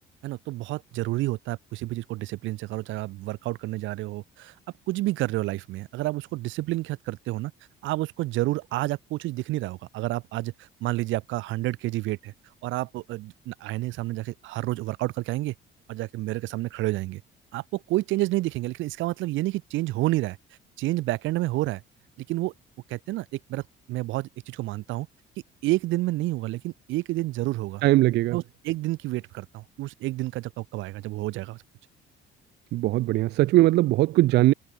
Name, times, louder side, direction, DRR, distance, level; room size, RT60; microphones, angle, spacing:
voice 1, 0.2-4.5 4.9-7.5 7.8-12.3 12.6-15.5 15.9-17.2 17.5-20.4 20.8-21.8 22.2-22.5 22.9-23.6 23.9-25.1 25.6-27.8 28.3-31.6, right 18 dB, 80° right, 1.1 m, -29 dB
voice 2, 27.8-28.4 32.7-34.5, right 17 dB, 60° right, 0.4 m, -20 dB
cardioid pair, 150°, 20 cm